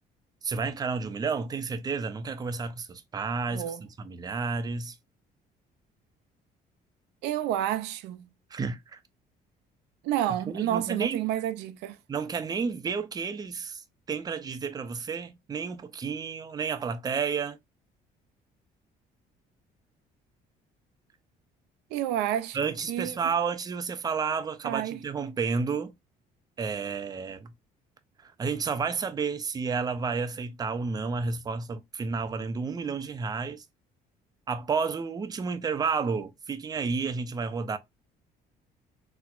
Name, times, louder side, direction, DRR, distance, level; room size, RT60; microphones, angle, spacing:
voice 1, 0.4-4.9 8.5-9.0 10.5-11.2 12.1-13.8 14.1-17.6 22.5-25.9 26.6-27.5 28.2-33.6 34.5-37.8, right 5 dB, 25° right, 0.4 m, -31 dB
voice 2, 3.5-3.8 7.2-8.3 10.0-12.0 21.9-22.6 22.9-23.3 24.6-25.0, right 11 dB, 90° right, 0.4 m, -30 dB
4.2 x 2.0 x 2.3 m
cardioid pair, 110°, 17 cm